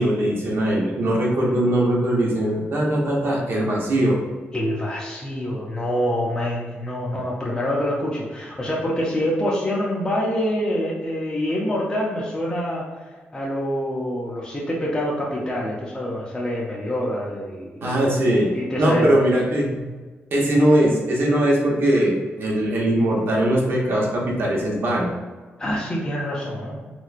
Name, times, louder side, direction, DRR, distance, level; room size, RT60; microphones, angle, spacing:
voice 1, 0.0-4.2 17.8-18.5 18.8-19.9 20.3-25.1, right 1 dB, 60° right, -2 dB, 0.8 m, -20 dB
voice 2, 4.5-12.9 13.3-18.1 18.3-19.1 25.6-26.8, equal, 15° left, -5 dB, 0.5 m, -26 dB
3.3 x 3.0 x 2.4 m, 1.3 s
wide cardioid pair, 140°, 4 cm